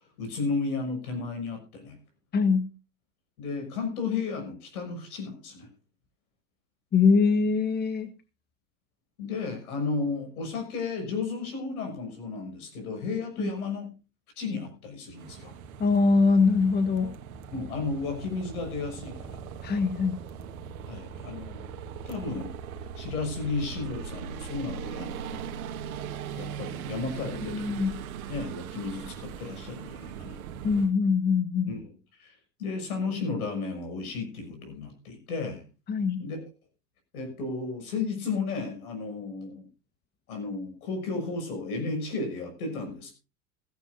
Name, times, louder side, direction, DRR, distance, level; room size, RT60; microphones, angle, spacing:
voice 1, 0.2-2.0 3.4-5.7 9.2-13.9 14.4-15.5 17.5-19.4 20.9-21.6 22.1-22.5 22.9-25.4 26.4-27.7 28.3-30.4 31.7-31.8 32.2-32.3 32.6-35.6 36.2-36.4 37.1-39.7 40.3-43.1, left 4 dB, 75° left, 5 dB, 6.7 m, -33 dB
voice 2, 2.3-2.7 6.9-8.1 13.4-13.5 15.8-17.1 19.6-20.2 27.4-27.9 30.6-31.8 35.9-36.2, left 4 dB, 20° left, 10 dB, 1.4 m, -23 dB
sound 1, 15.2-30.9, right 7 dB, 70° right, 1.8 m, -40 dB
16.5 x 15.5 x 2.6 m, 0.31 s
hypercardioid pair, 105°, 44 cm